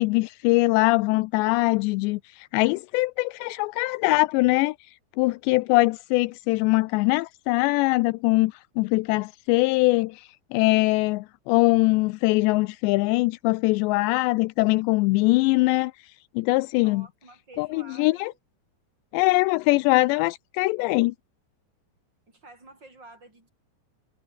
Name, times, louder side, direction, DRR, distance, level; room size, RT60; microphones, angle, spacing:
voice 1, 0.0-4.8 5.2-15.9 16.4-17.1 17.6-18.3 19.1-21.1, left 23 dB, 85° left, 2.7 m, -22 dB
voice 2, 16.8-18.4 22.3-23.5, right 2 dB, 20° right, 8.5 m, -50 dB
omnidirectional pair, 5.3 m